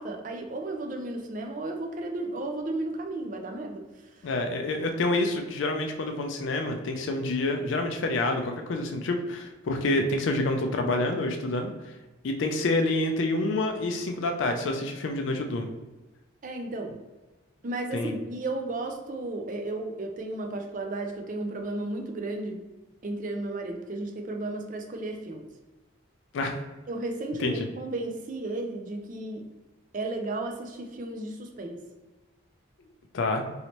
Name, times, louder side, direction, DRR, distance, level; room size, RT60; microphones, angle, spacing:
voice 1, 0.0-4.3 16.4-17.0 17.6-22.6 23.0-25.5 26.9-29.5 29.9-31.8, right 2 dB, 40° right, 3 dB, 0.4 m, -34 dB
voice 2, 4.2-11.7 12.2-15.7 17.9-18.2 26.3-26.6 27.4-27.7 33.1-33.4, left 2 dB, 65° left, 4 dB, 0.4 m, -27 dB
3.1 x 2.8 x 2.9 m, 1.1 s
head